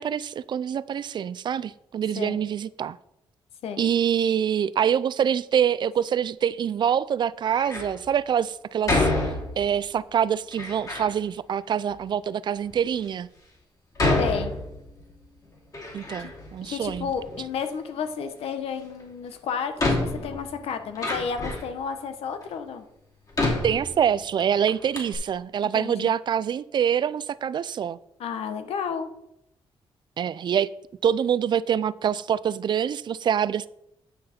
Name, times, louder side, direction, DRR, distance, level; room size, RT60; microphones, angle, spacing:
voice 1, 0.0-3.0 3.8-9.1 9.6-13.3 15.9-17.1 23.6-28.0 30.2-30.7 31.0-33.7, right 8 dB, 50° right, 0.4 m, -25 dB
Door, 7.5-8.0 8.9-9.8 10.5-11.1 11.9-12.0 12.7-12.8 14.0-15.1 15.5-16.5 16.8-17.7 19.0-19.1 19.8-21.7 22.4-22.5 23.3-24.4 24.7-24.8 24.9-25.2, left 2 dB, 35° left, 2.7 m, -28 dB
voice 2, 14.2-14.5 16.2-16.3 16.6-22.8 25.6-26.1 28.2-29.1, left 6 dB, 90° left, 1.0 m, -32 dB
9.4 x 6.3 x 4.3 m
cardioid pair, 110°, 10 cm